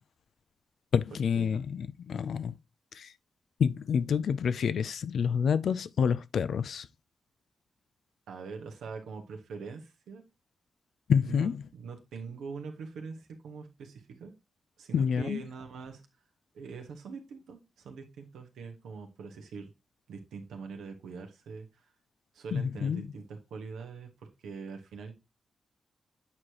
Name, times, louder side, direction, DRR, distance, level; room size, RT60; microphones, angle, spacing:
voice 1, 0.9-2.5 2.9-3.1 3.6-6.9 11.1-11.7 14.9-15.4 22.5-23.1, left 7 dB, 75° left, 0.4 m, -28 dB
voice 2, 8.3-10.2 11.2-14.3 14.8-16.0 16.5-19.7 20.1-21.8 22.3-24.1 24.4-25.1, right 5 dB, 90° right, 1.3 m, -43 dB
8.5 x 4.8 x 2.9 m
cardioid pair, 50°, 0 cm